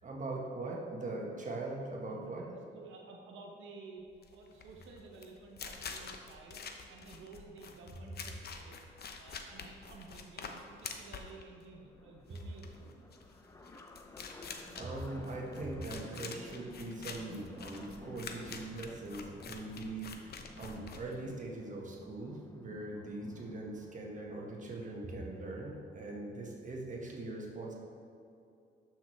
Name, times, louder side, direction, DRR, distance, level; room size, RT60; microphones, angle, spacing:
voice 1, 0.0-2.5 14.8-20.3 20.6-27.7, right 2 dB, 40° right, -1 dB, 1.5 m, -41 dB
voice 2, 2.1-4.0 4.3-8.8 9.2-13.1, right 3 dB, 75° right, 0 dB, 1.2 m, -53 dB
sound 1, 4.1-21.5, left 5 dB, 55° left, 0.9 m, -47 dB
sound 2, 9.5-9.6 9.9-10.0 10.1-26.0, left 2 dB, 15° left, 0.6 m, -54 dB
11.5 x 6.1 x 3.2 m, 2.6 s
cardioid pair, 90°, 20 cm